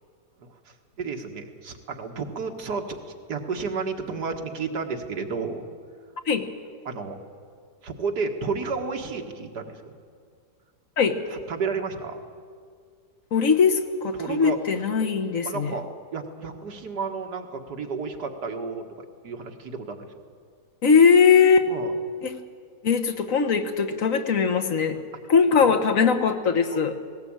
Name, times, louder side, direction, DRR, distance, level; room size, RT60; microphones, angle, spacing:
voice 1, 1.0-3.0 3.3-5.7 6.9-7.2 7.8-9.8 11.3-12.2 14.1-14.6 15.5-20.2 21.7-21.9 25.6-25.8 26.7-26.8, right 4 dB, 85° right, 4 dB, 2.1 m, -32 dB
voice 2, 13.3-15.7 20.8-21.7 22.2-22.3 22.8-25.0 25.3-26.9, left 6 dB, 55° left, 5 dB, 1.5 m, -20 dB
18.5 x 17.5 x 8.8 m, 2.1 s
omnidirectional pair, 1.7 m